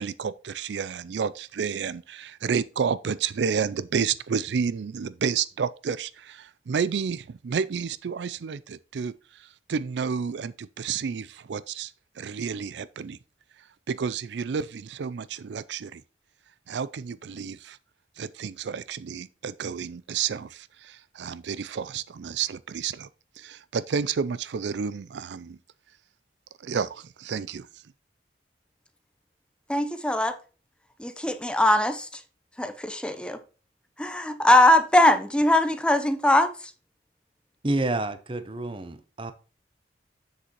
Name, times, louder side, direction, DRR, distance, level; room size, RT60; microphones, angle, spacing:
voice 1, 0.0-13.2 13.6-16.0 16.7-17.8 18.2-23.1 23.4-25.6 26.6-27.7, right 6 dB, 80° right, 0.4 m, -30 dB
voice 2, 29.7-30.4 31.0-32.1 32.6-33.4 34.0-36.5, left 1 dB, 5° left, 0.6 m, -21 dB
voice 3, 37.6-39.3, right 2 dB, 30° right, 0.8 m, -29 dB
7.6 x 6.7 x 3.0 m
head